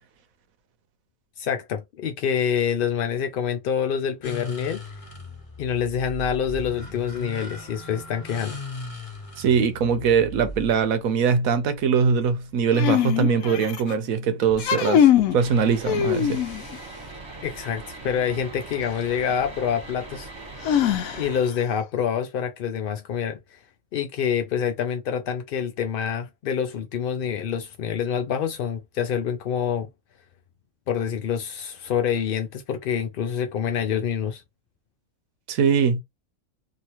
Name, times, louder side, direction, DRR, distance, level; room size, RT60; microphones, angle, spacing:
voice 1, 1.4-4.8 5.6-8.6 17.4-20.3 21.1-23.6 23.9-29.9 30.9-34.4, left 8 dB, 65° left, 0.5 m, -26 dB
sound 1, 4.2-12.6, left 2 dB, 30° left, 0.9 m, -38 dB
voice 2, 9.4-16.4 35.5-36.0, right 6 dB, 85° right, 1.1 m, -22 dB
sound 2, 12.7-13.9 14.5-15.4 15.9-16.8 18.7-18.8 20.6-21.5, left 9 dB, 85° left, 1.0 m, -22 dB
sound 3, 15.4-21.4, right 2 dB, 20° right, 1.3 m, -40 dB
2.9 x 2.7 x 2.8 m
omnidirectional pair, 1.4 m